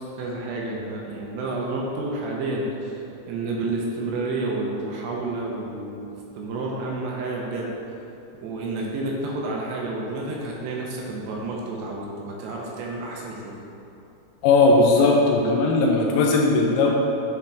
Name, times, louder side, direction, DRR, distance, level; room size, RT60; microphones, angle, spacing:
voice 1, 0.0-3.0 3.3-7.7 8.4-13.6, right 2 dB, 80° right, -2 dB, 2.7 m, -30 dB
voice 2, 14.4-16.9, left 3 dB, 80° left, 0 dB, 3.0 m, -18 dB
9.2 x 4.2 x 3.5 m, 2.9 s
omnidirectional pair, 5.3 m